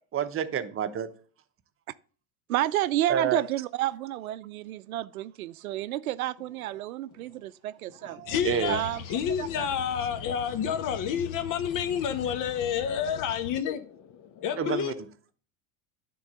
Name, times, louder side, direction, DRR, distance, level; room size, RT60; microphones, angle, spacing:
voice 1, 0.1-1.1 3.1-3.4 8.4-8.8 14.6-15.1, right 8 dB, 30° right, 1.0 m, -28 dB
voice 2, 2.5-8.4 8.7-9.0 9.4-9.7, right 14 dB, 85° right, 0.6 m, -31 dB
voice 3, 8.0-8.8 9.1-14.9, left 8 dB, 50° left, 1.3 m, -29 dB
sound 1, 8.3-13.6, left 8 dB, 75° left, 0.8 m, -41 dB
10.0 x 3.9 x 6.6 m
hypercardioid pair, 90°, 41 cm